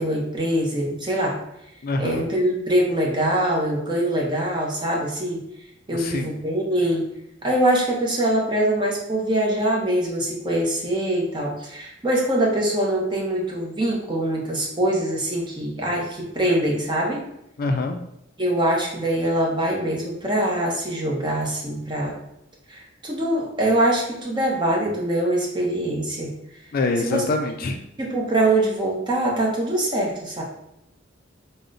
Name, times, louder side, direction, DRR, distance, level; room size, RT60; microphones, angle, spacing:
voice 1, 0.0-1.4 2.0-5.4 5.9-7.1 7.4-17.2 18.4-22.1 22.7-26.3 27.0-27.2 28.0-30.4, right 1 dB, 25° right, -2 dB, 0.8 m, -23 dB
voice 2, 1.8-2.2 5.9-6.3 17.6-18.0 26.7-27.8, left 2 dB, 50° left, 5 dB, 0.3 m, -25 dB
3.8 x 2.1 x 3.8 m, 0.80 s
head